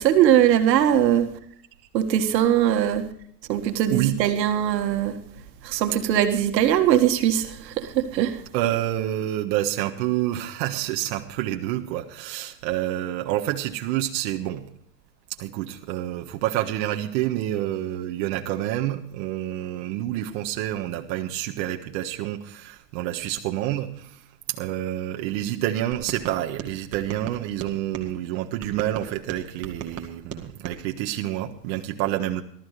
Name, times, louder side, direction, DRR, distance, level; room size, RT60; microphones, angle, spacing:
voice 1, 0.0-1.4 1.9-3.1 3.5-5.2 5.6-8.4, right 10 dB, 80° right, 6 dB, 1.9 m, -21 dB
voice 2, 3.7-4.2 8.5-14.7 15.3-32.4, right 13 dB, 55° right, 3 dB, 1.5 m, -28 dB
sound 1, 25.9-28.1 28.6-30.8, right 7 dB, 30° right, 2.1 m, -38 dB
18.5 x 13.5 x 3.3 m, 0.64 s
supercardioid pair, 135°, 49 cm